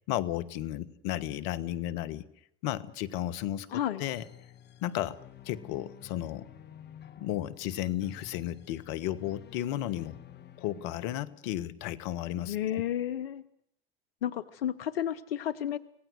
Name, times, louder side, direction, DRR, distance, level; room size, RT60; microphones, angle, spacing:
voice 1, 0.1-2.3 2.6-3.7 4.0-4.3 4.8-5.2 5.4-6.5 7.2-10.2 10.6-12.8, left 13 dB, 65° left, 15 dB, 1.4 m, -33 dB
voice 2, 3.7-4.0 12.4-13.4 14.2-15.8, left 10 dB, 80° left, 13 dB, 0.9 m, -32 dB
sound 1, 4.0-11.7, left 10 dB, 35° left, 1.8 m, -52 dB
25.5 x 18.0 x 7.9 m, 0.73 s
hypercardioid pair, 80°, 29 cm